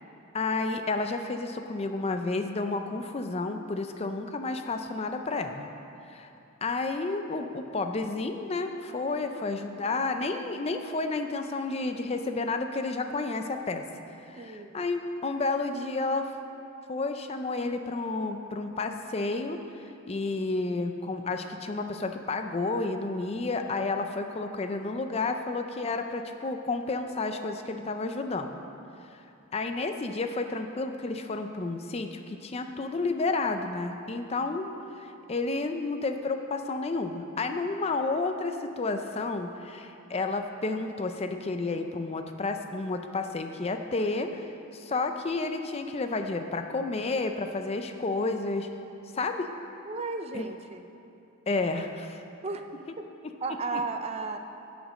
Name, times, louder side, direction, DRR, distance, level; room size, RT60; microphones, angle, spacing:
voice 1, 0.3-5.7 6.1-6.3 6.6-13.8 14.3-16.3 16.9-19.6 20.1-28.5 29.5-34.7 35.0-44.4 44.7-48.7 49.1-49.5 50.3-50.4 51.5-52.2 53.7-53.8, left 3 dB, 30° left, 6 dB, 0.4 m, -31 dB
voice 2, 14.4-14.8 49.8-50.9 52.4-52.7 53.4-54.4, right 3 dB, 30° right, 7 dB, 0.4 m, -34 dB
11.0 x 5.1 x 7.4 m, 2.8 s
head